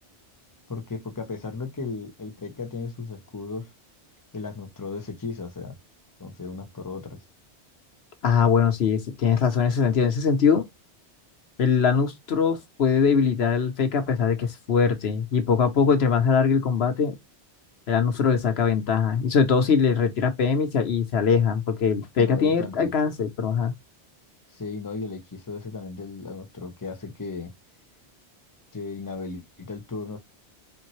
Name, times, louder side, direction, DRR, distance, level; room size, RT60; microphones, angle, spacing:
voice 1, 0.7-3.7 4.3-5.8 6.2-7.2 22.2-22.9 24.5-27.5 28.7-30.2, left 4 dB, 20° left, 0.8 m, -35 dB
voice 2, 8.2-10.7 11.6-17.2 17.9-23.7, left 6 dB, 70° left, 1.1 m, -22 dB
4.4 x 3.6 x 3.1 m
omnidirectional pair, 1.1 m